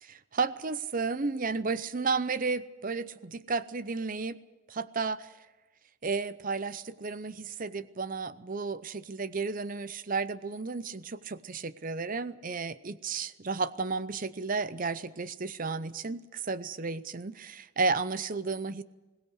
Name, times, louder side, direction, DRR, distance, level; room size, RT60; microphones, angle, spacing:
voice 1, 0.0-4.4 4.7-5.4 6.0-18.8, right 4 dB, 35° right, 15 dB, 0.6 m, -33 dB
21.5 x 18.0 x 8.0 m, 1.1 s
head